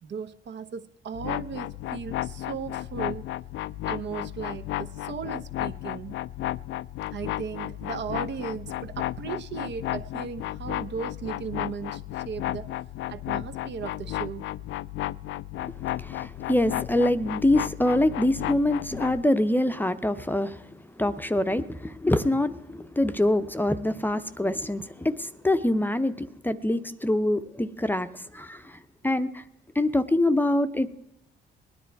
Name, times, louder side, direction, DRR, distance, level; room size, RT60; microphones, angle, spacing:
voice 1, 0.0-3.2 3.9-6.1 7.1-12.7 13.1-14.5, right 6 dB, 60° right, 10 dB, 1.0 m, -36 dB
sound 1, 1.1-19.2, left 14 dB, 75° left, 0.4 m, -33 dB
voice 2, 16.0-20.6 21.0-28.8 29.0-29.4 29.8-31.0, left 1 dB, 10° left, 10 dB, 0.7 m, -25 dB
19.5 x 10.0 x 4.6 m, 0.86 s
cardioid pair, 90°, 20 cm